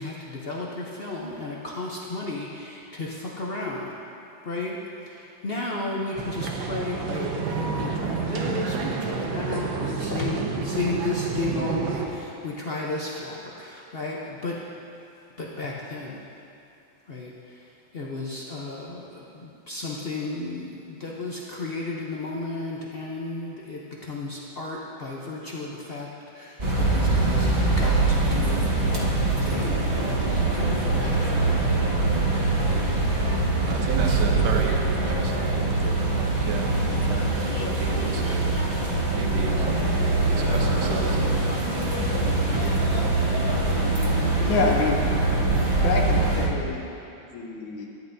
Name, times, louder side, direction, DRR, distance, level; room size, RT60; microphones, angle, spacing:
voice 1, 0.0-3.9 4.4-4.8 5.1-14.6 15.4-16.2 17.1-17.3 17.9-31.7, left 2 dB, 70° left, -3 dB, 0.5 m, -33 dB
sound 1, 6.2-12.1, right 5 dB, 85° right, 1.6 m, -29 dB
sound 2, 26.6-46.5, right 2 dB, 25° right, 1.1 m, -23 dB
voice 2, 33.7-39.7 40.0-41.4, right 4 dB, 65° right, 2 dB, 1.4 m, -35 dB
voice 3, 44.5-45.0 45.8-46.9 47.3-47.9, left 3 dB, 90° left, -1 dB, 1.7 m, -26 dB
13.5 x 10.0 x 2.7 m, 2.7 s
omnidirectional pair, 2.1 m